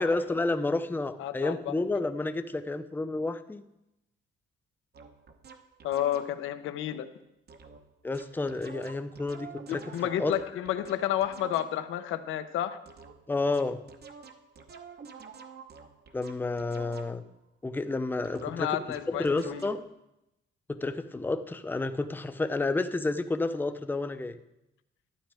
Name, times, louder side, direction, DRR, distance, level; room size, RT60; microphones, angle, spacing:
voice 1, 0.0-3.6 8.0-10.3 13.3-13.8 16.1-17.2 17.6-18.7 19.1-19.8 20.7-24.4, left 2 dB, 10° left, 10 dB, 0.6 m, -30 dB
voice 2, 1.2-1.7 5.8-7.1 9.7-12.8 18.4-19.7, left 11 dB, 85° left, 10 dB, 0.7 m, -31 dB
sound 1, 4.9-6.6 7.5-7.8 8.1-12.0 12.9-17.4 18.2-19.9, right 5 dB, 55° right, 1.0 m, -49 dB
12.0 x 8.8 x 3.4 m, 0.90 s
cardioid pair, 90°, 20 cm